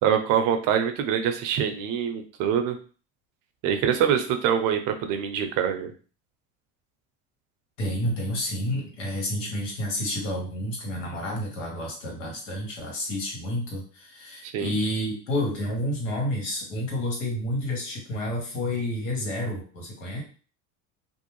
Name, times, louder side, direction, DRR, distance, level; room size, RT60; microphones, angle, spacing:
voice 1, 0.0-2.8 3.6-5.9 14.5-14.7, right 8 dB, 55° right, 7 dB, 0.6 m, -24 dB
voice 2, 7.8-20.2, left 1 dB, 85° left, 0 dB, 1.2 m, -30 dB
2.6 x 2.0 x 3.0 m, 0.38 s
hypercardioid pair, 85°, 37 cm